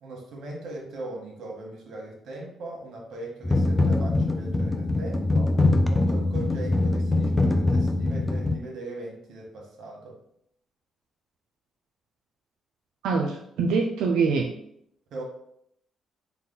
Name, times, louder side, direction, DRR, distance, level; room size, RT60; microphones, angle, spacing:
voice 1, 0.0-5.6 5.9-10.2 15.1-15.2, right 2 dB, 70° right, 0 dB, 1.2 m, -39 dB
sound 1, 3.4-8.6, left 2 dB, 15° left, 0.4 m, -23 dB
voice 2, 13.0-14.5, right 4 dB, 90° right, 0 dB, 0.4 m, -24 dB
4.1 x 2.3 x 3.8 m, 0.72 s
cardioid pair, 90°, 0 cm